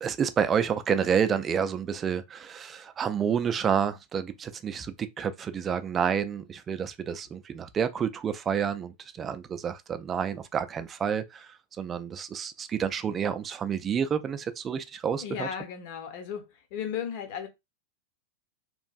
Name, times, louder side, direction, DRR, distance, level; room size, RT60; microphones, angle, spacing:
voice 1, 0.0-15.5, right 7 dB, 25° right, 0.3 m, -29 dB
voice 2, 15.2-17.5, left 8 dB, 50° left, 0.7 m, -35 dB
3.1 x 2.5 x 2.4 m
figure-of-eight pair, 90°, 0 cm